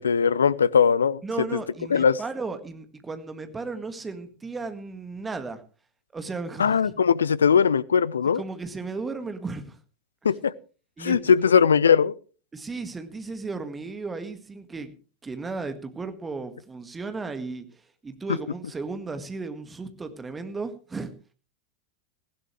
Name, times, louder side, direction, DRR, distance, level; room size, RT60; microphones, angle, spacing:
voice 1, 0.0-1.6 1.9-2.2 6.6-8.4 10.2-10.5 11.0-12.1, left 6 dB, 70° left, 22 dB, 0.6 m, -20 dB
voice 2, 1.2-5.6 6.1-6.9 8.4-9.8 11.0-11.2 11.4-11.5 12.5-14.9 15.2-21.1, right 3 dB, 15° right, 9 dB, 1.8 m, -35 dB
18.0 x 15.5 x 3.2 m, 0.37 s
figure-of-eight pair, 90°, 0 cm